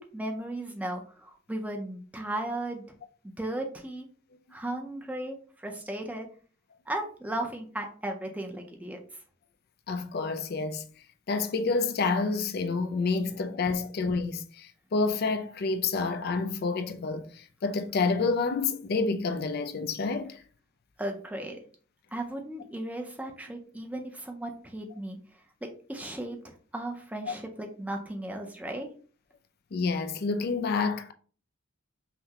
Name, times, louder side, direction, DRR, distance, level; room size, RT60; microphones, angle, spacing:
voice 1, 0.0-2.8 3.2-4.1 4.5-6.3 6.9-9.0 21.0-21.6 22.1-28.9, right 1 dB, 5° right, 0.6 m, -36 dB
voice 2, 9.9-10.9 11.3-20.4 27.3-27.4 29.7-31.1, left 4 dB, 50° left, 0.4 m, -28 dB
5.7 x 2.2 x 2.8 m
head